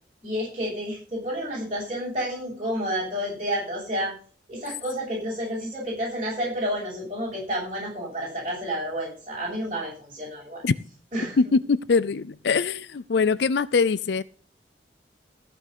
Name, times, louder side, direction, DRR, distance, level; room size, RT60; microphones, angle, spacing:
voice 1, 0.2-4.1 4.5-10.6 11.1-11.4, equal, 30° right, -7 dB, 7.3 m, -30 dB
voice 2, 11.4-14.2, left 4 dB, 70° left, 17 dB, 0.5 m, -22 dB
15.0 x 6.1 x 6.7 m, 0.40 s
head